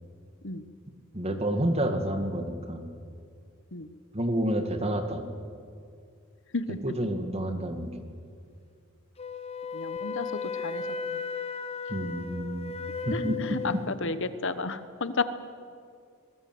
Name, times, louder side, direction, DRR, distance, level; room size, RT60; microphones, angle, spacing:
voice 1, 1.1-2.9 4.1-5.3 6.8-7.9 11.9-12.7 13.1-13.6, right 1 dB, 30° right, 6 dB, 2.1 m, -29 dB
Wind instrument woodwind instrument, 9.2-13.9, left 5 dB, 30° left, 1.0 m, -35 dB
voice 2, 9.7-10.8 13.1-15.2, left 3 dB, 60° left, 12 dB, 1.2 m, -32 dB
23.0 x 19.5 x 7.9 m, 2.3 s
head